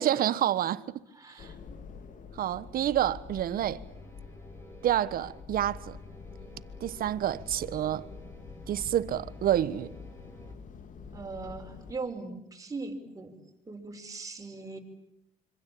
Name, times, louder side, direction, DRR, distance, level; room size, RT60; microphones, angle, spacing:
voice 1, 0.0-1.0 2.4-3.8 4.8-6.0 6.8-8.1 8.7-9.9, right 11 dB, 60° right, 1.3 m, -28 dB
voice 2, 1.1-1.6 11.1-13.4 13.7-14.8, right 3 dB, 20° right, 5.3 m, -39 dB
sound 1, 1.4-11.9, left 5 dB, 50° left, 2.4 m, -46 dB
sound 2, 3.8-10.5, right 1 dB, 15° left, 6.8 m, -52 dB
26.5 x 25.5 x 8.8 m
cardioid pair, 110°, 17 cm